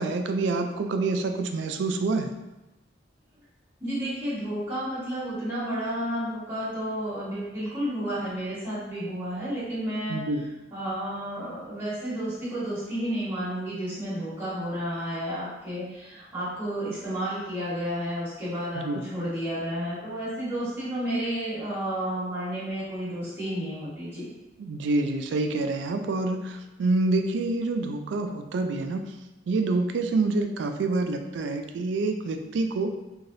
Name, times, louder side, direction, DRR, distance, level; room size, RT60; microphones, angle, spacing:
voice 1, 0.0-2.3 10.1-10.4 18.8-19.0 24.6-29.1 29.5-32.9, right 3 dB, 75° right, 6 dB, 0.3 m, -27 dB
voice 2, 3.8-10.2 10.7-24.3, equal, 10° right, -12 dB, 1.3 m, -31 dB
3.2 x 2.7 x 2.6 m, 1.0 s
head